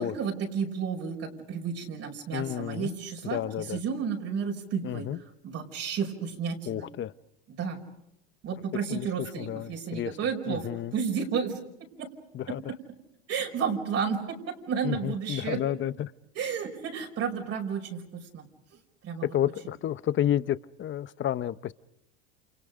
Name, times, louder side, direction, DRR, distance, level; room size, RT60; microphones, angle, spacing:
voice 1, 0.0-5.1 5.4-6.9 7.5-7.8 8.4-10.7 10.9-11.6 12.0-12.1 12.5-12.8 13.3-15.6 16.4-18.5 19.0-19.3, right 6 dB, 50° right, 1 dB, 5.6 m, -32 dB
voice 2, 2.3-2.9 3.2-3.8 4.8-5.2 6.7-7.1 8.9-10.1 10.5-10.9 12.3-12.7 14.8-16.1 19.2-21.7, left 11 dB, 35° left, 16 dB, 0.9 m, -31 dB
29.5 x 28.0 x 5.2 m, 0.83 s
supercardioid pair, 100°, 32 cm